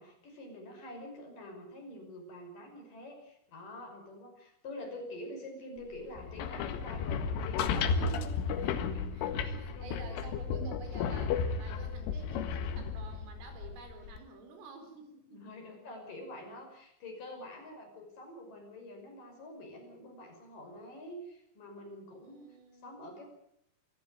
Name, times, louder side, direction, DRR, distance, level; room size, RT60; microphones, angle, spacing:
voice 1, 0.0-9.1 9.4-10.2 15.3-22.5 22.8-23.2, left 1 dB, 45° left, 3 dB, 7.0 m, -47 dB
sound 1, 6.2-14.2, left 5 dB, 80° left, 4.1 m, -33 dB
voice 2, 7.9-15.4 17.6-17.7 22.2-22.9, right 3 dB, 85° right, 6 dB, 7.0 m, -50 dB
25.5 x 15.5 x 9.3 m, 0.75 s
omnidirectional pair, 5.7 m